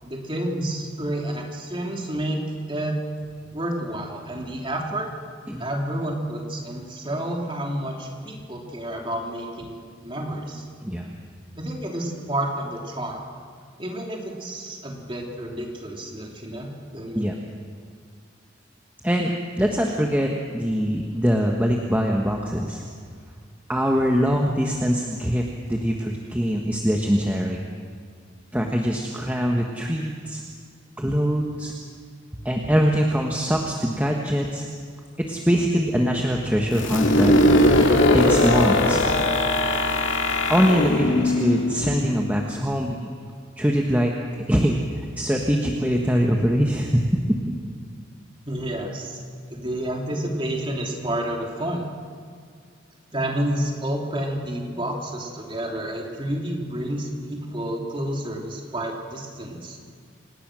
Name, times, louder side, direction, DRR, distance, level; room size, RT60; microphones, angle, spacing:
voice 1, 0.0-2.4 2.7-3.0 3.5-5.1 5.6-10.6 11.6-13.2 13.8-17.3 48.4-49.2 49.5-51.8 53.1-59.8, right 1 dB, 25° right, 0 dB, 3.2 m, -30 dB
voice 2, 10.8-11.1 17.1-17.3 19.0-22.8 23.7-27.7 28.5-30.4 31.0-31.7 32.4-34.7 35.2-37.3 38.1-39.0 40.5-43.1 43.6-44.1 44.5-47.3, equal, 10° right, 0 dB, 1.3 m, -23 dB
sound 1, 36.7-42.4, left 1 dB, 70° left, 2.4 m, -20 dB
28.0 x 18.0 x 6.3 m, 2.1 s
head